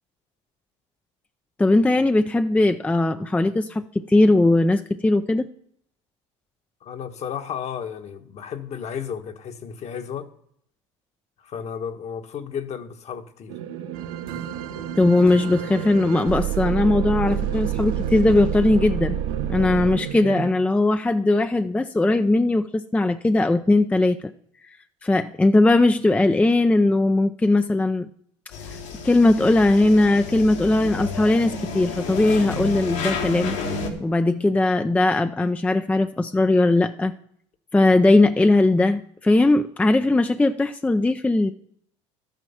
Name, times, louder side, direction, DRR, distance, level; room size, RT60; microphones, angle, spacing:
voice 1, 1.6-5.5 15.0-19.2 19.5-24.2 25.0-28.1 29.0-33.5 34.0-37.1 37.7-41.5, left 2 dB, 10° left, 0.5 m, -19 dB
voice 2, 6.8-10.3 11.4-13.6, left 7 dB, 45° left, 1.4 m, -33 dB
sound 1, 13.5-20.5, right 9 dB, 85° right, 1.3 m, -33 dB
sound 2, 13.9-20.0, right 11 dB, 60° right, 1.3 m, -29 dB
sound 3, 28.5-33.9, left 4 dB, 85° left, 3.7 m, -31 dB
12.0 x 9.2 x 5.8 m
supercardioid pair, 95°, 16 cm